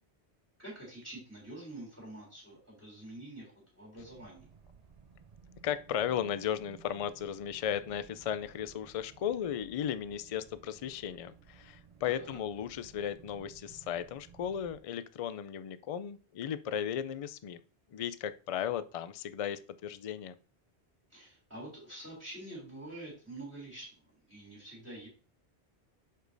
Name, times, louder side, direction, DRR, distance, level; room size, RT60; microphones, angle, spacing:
voice 1, 0.6-4.5 12.0-12.4 21.1-25.1, right 1 dB, 15° right, -4 dB, 3.2 m, -47 dB
sound 1, 4.0-14.8, right 6 dB, 45° right, 0.6 m, -58 dB
voice 2, 5.6-17.6 17.9-20.3, left 9 dB, 60° left, 14 dB, 0.3 m, -35 dB
8.0 x 6.6 x 2.6 m, 0.37 s
omnidirectional pair, 1.1 m